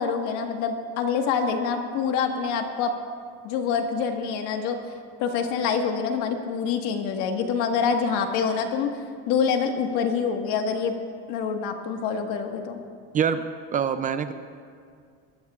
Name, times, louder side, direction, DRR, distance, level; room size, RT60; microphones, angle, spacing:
voice 1, 0.0-2.9 3.4-4.8 5.2-8.9 9.3-10.9 11.3-12.8, left 6 dB, 65° left, 4 dB, 1.6 m, -26 dB
voice 2, 13.7-14.3, right 7 dB, 25° right, 10 dB, 0.4 m, -24 dB
23.0 x 15.0 x 2.4 m, 2.2 s
cardioid pair, 145°, 31 cm